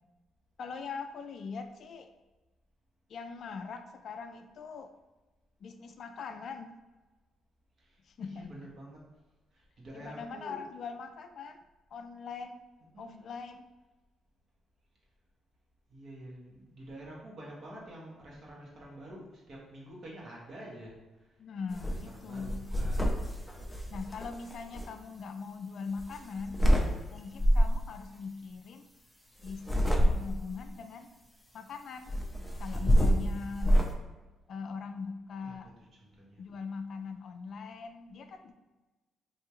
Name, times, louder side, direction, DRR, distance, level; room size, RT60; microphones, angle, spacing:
voice 1, 0.6-2.1 3.1-4.9 5.6-6.7 8.1-8.5 9.9-11.6 11.9-12.6 13.0-13.7 21.4-22.6 23.9-26.6 27.1-28.9 29.4-31.1 31.5-32.1 32.6-33.8 34.5-35.7 36.4-38.5, left 5 dB, 60° left, 8 dB, 0.3 m, -41 dB
voice 2, 7.8-9.0 9.5-10.6 12.9-13.2 15.9-20.9 22.1-23.0 35.4-35.5 36.0-36.4, right 1 dB, 55° right, -4 dB, 1.2 m, -48 dB
sound 1, 21.7-22.0 22.3-24.8 26.0-26.9 27.4-27.8 29.4-30.5 32.1-33.9, equal, 5° left, 0.5 m, -26 dB
3.5 x 2.7 x 3.0 m, 1.2 s
cardioid pair, 90°, 0 cm